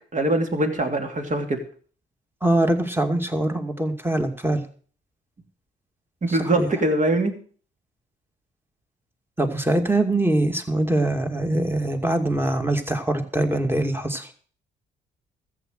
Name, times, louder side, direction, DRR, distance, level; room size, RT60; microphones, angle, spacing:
voice 1, 0.1-1.6 6.2-7.3, right 1 dB, 40° right, 4 dB, 2.9 m, -23 dB
voice 2, 2.4-4.6 6.3-6.7 9.4-14.3, right 1 dB, 10° right, 5 dB, 2.5 m, -23 dB
14.0 x 7.9 x 6.6 m, 0.44 s
hypercardioid pair, 45°, 20 cm